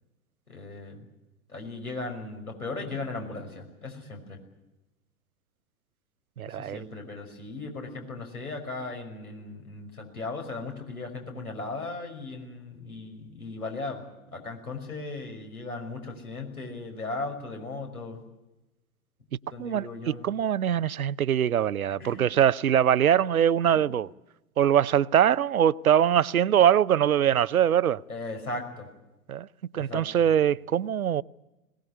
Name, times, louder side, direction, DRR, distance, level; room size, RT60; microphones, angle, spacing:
voice 1, 0.5-1.1 1.5-4.4 6.5-14.0 14.3-18.2 19.5-20.2 22.0-22.2 23.7-23.9 28.1-28.9 29.7-30.3, left 3 dB, 80° left, 5.9 m, -37 dB
voice 2, 6.4-6.8 19.6-24.1 24.6-28.0 29.3-29.5 29.7-31.2, right 9 dB, 75° right, 0.8 m, -23 dB
21.5 x 19.0 x 9.9 m
figure-of-eight pair, 105°, 43 cm